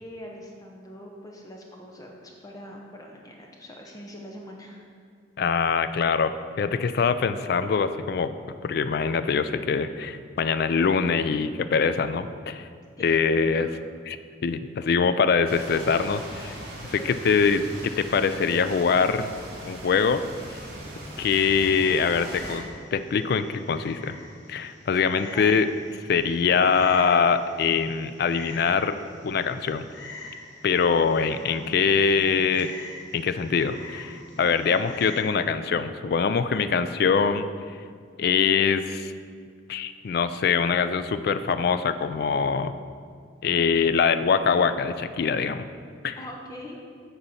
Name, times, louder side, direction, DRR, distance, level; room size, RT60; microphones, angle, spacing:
voice 1, 0.0-4.8 13.0-13.8 16.8-17.1 25.3-25.6 31.4-31.9 34.3-34.6 46.1-46.8, equal, 20° left, 0 dB, 0.7 m, -43 dB
voice 2, 5.4-8.3 8.6-12.7 13.0-13.7 14.1-14.2 14.4-16.6 16.9-19.3 19.6-20.2 20.5-20.6 21.2-22.6 22.9-24.1 24.5-25.7 26.0-29.0 29.2-29.9 30.6-32.7 33.1-37.5 38.2-39.1 39.7-42.7 43.4-45.7 46.0-46.2, left 5 dB, 55° left, 11 dB, 0.3 m, -23 dB
sound 1, 15.4-22.6, right 1 dB, 55° right, 2.1 m, -40 dB
Frog, 22.3-35.2, left 3 dB, 75° left, 0.9 m, -45 dB
8.0 x 4.1 x 5.7 m, 2.1 s
head